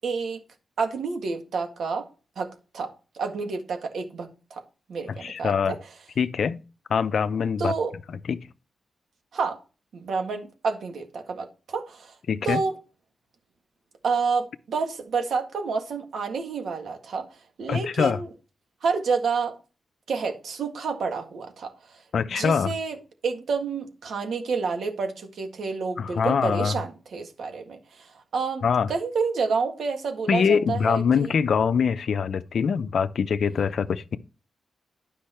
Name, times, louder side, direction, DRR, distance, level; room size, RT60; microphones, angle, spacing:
voice 1, 0.0-0.4 0.8-2.1 2.4-4.6 4.9-5.8 7.6-7.9 9.3-9.6 9.9-12.1 12.4-12.7 14.0-17.3 17.6-18.3 18.8-19.5 20.1-21.7 22.3-23.0 23.2-31.3, right 5 dB, 75° right, 1.7 m, -29 dB
voice 2, 5.2-5.8 6.2-6.6 6.9-7.8 8.1-8.4 12.3-12.6 17.7-18.2 22.1-22.8 26.0-26.8 28.6-28.9 30.3-34.2, left 6 dB, 65° left, 0.6 m, -24 dB
10.5 x 5.5 x 4.4 m
cardioid pair, 95°, 0 cm